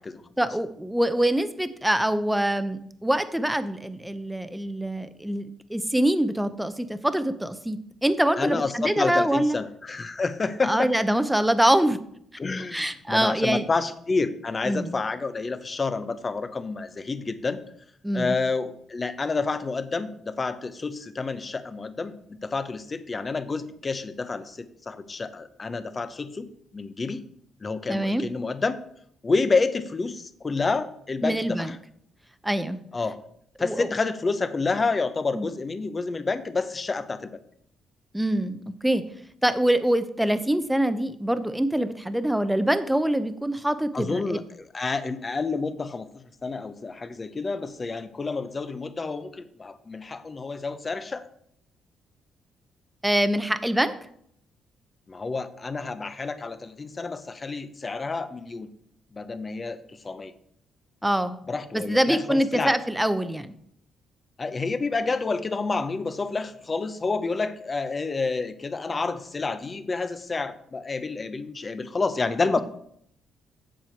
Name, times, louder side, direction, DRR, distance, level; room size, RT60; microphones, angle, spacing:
voice 1, 0.4-9.6 10.6-12.0 12.7-13.6 14.7-15.0 18.0-18.3 27.9-28.2 31.2-31.7 32.4-32.8 33.6-33.9 35.3-35.5 38.1-39.0 39.4-44.4 53.0-53.9 61.0-61.4 61.7-63.5, right 1 dB, 5° right, 11 dB, 0.7 m, -24 dB
voice 2, 8.4-10.9 12.4-17.6 18.1-27.2 27.6-28.8 29.2-31.8 32.9-33.2 33.6-37.4 43.9-51.3 55.1-58.7 59.1-60.3 61.5-62.8 64.4-72.6, left 4 dB, 30° left, 11 dB, 0.7 m, -29 dB
7.6 x 6.8 x 4.5 m, 0.68 s
cardioid pair, 90°, 0 cm